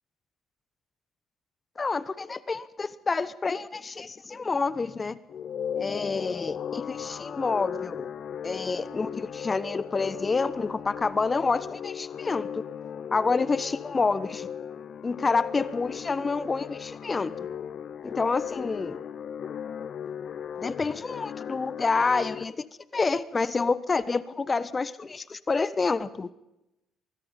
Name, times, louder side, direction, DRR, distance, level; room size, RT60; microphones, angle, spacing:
voice 1, 1.8-5.1 5.8-8.0 8.4-12.6 13.1-14.5 15.0-17.3 18.0-19.0 20.6-22.7 22.9-26.3, left 4 dB, 30° left, 17 dB, 1.2 m, -28 dB
sound 1, 5.3-22.4, left 8 dB, 55° left, 0.9 m, -37 dB
24.0 x 21.5 x 5.4 m, 0.90 s
hypercardioid pair, 50°, 0 cm